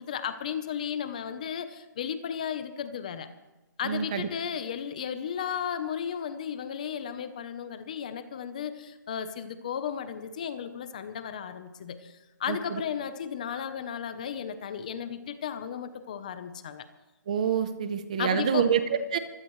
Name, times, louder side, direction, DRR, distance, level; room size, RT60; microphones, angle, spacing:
voice 1, 0.0-3.3 3.8-16.9 18.2-18.7, left 8 dB, 20° left, 11 dB, 0.7 m, -34 dB
voice 2, 3.8-4.3 12.5-12.6 17.3-19.2, right 7 dB, 20° right, 11 dB, 0.7 m, -26 dB
24.5 x 16.5 x 3.2 m, 1.1 s
hypercardioid pair, 180°, 11 cm